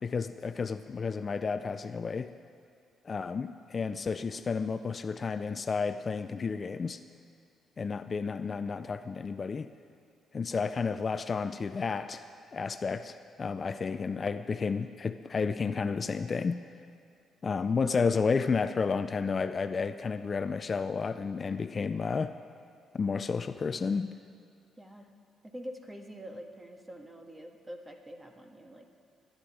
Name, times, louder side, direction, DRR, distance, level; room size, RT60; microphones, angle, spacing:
voice 1, 0.0-2.3 3.0-7.0 7.8-9.7 10.3-12.2 12.5-16.6 17.4-22.3 22.9-24.1, left 5 dB, 40° left, 10 dB, 0.4 m, -31 dB
voice 2, 25.4-28.9, equal, 20° right, 3 dB, 1.6 m, -46 dB
21.5 x 10.5 x 4.9 m, 2.3 s
cardioid pair, 90°, 0 cm